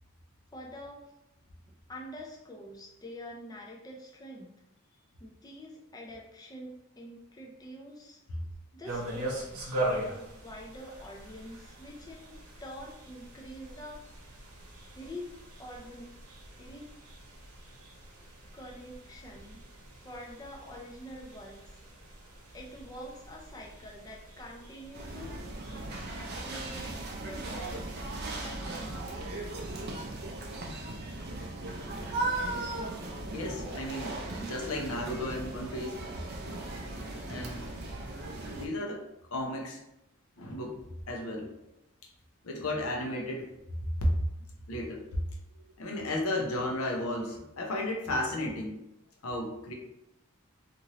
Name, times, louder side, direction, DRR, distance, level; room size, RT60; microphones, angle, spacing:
voice 1, 0.5-1.1 1.7-4.6 5.2-8.2 8.7-12.4 12.6-14.1 15.0-15.3 15.6-16.2 16.6-16.9 18.5-19.6 20.0-21.8 22.5-25.7 26.3-28.0 28.3-29.1, equal, 15° left, -1 dB, 0.4 m, -46 dB
sound 1, 8.8-28.5, right 1 dB, 85° right, 0.9 m, -42 dB
sound 2, 24.9-38.7, right 2 dB, 45° right, 0.4 m, -37 dB
voice 2, 33.3-36.0 37.2-37.7 38.5-39.0 39.3-39.8 40.4-41.5 42.4-43.5 44.0-44.1 44.7-45.0 45.8-48.8 49.2-49.7, left 1 dB, 75° left, 1 dB, 0.6 m, -34 dB
2.8 x 2.5 x 2.9 m, 0.86 s
head